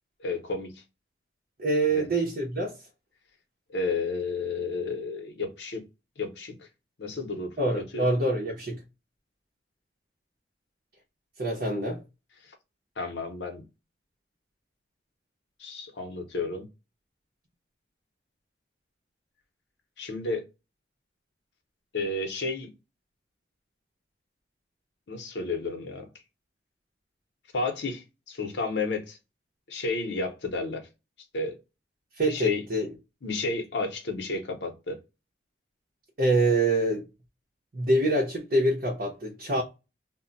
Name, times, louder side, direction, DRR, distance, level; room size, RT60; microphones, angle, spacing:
voice 1, 0.2-0.8 1.9-2.1 3.7-5.8 6.2-6.7 7.0-8.1 12.4-12.5 13.0-13.6 15.6-16.7 20.0-20.4 21.9-22.7 25.1-26.1 27.5-29.2 29.7-30.9 31.3-31.6 32.3-32.6 33.2-35.0, left 3 dB, 80° left, 0.7 m, -32 dB
voice 2, 1.6-2.7 7.6-8.8 11.4-12.0 32.2-32.9 36.2-37.1 37.7-39.6, right 2 dB, 55° right, 0.7 m, -25 dB
2.1 x 2.1 x 3.8 m
head